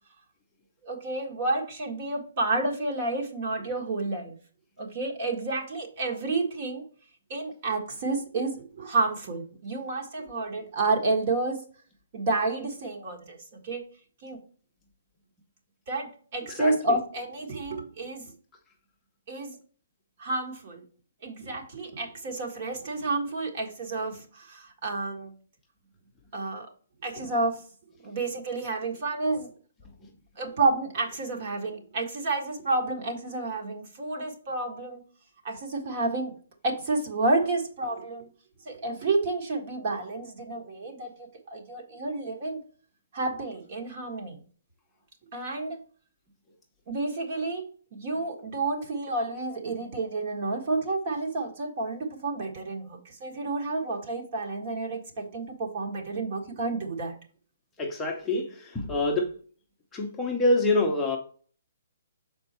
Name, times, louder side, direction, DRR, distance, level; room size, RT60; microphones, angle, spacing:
voice 1, 0.8-4.3 4.8-6.8 7.3-11.6 12.1-13.4 13.6-13.8 14.2-14.4 15.9-18.3 19.3-19.6 20.2-20.8 21.2-25.3 26.3-26.7 27.0-27.6 28.0-29.5 30.4-35.0 35.4-36.3 36.6-38.3 38.6-42.6 43.1-44.4 45.3-45.8 46.9-57.2, right 3 dB, 40° right, 1.6 m, -30 dB
voice 2, 57.8-59.3 59.9-61.2, left 2 dB, 10° left, 0.7 m, -26 dB
6.4 x 4.4 x 4.3 m
hypercardioid pair, 165°, 0 cm